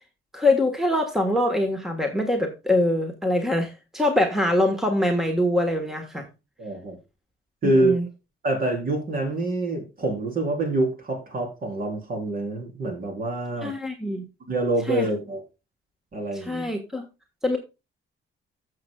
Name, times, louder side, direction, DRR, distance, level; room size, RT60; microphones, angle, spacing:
voice 1, 0.3-6.3 7.6-8.1 13.6-14.2 14.9-15.1 16.4-17.1 17.4-17.6, left 1 dB, ahead, 5 dB, 1.3 m, -24 dB
voice 2, 6.6-7.0 7.6-7.9 8.4-13.7 14.5-15.4 16.1-16.7, right 2 dB, 45° right, 3 dB, 3.8 m, -26 dB
15.0 x 6.6 x 2.3 m, 0.27 s
cardioid pair, 150°, 21 cm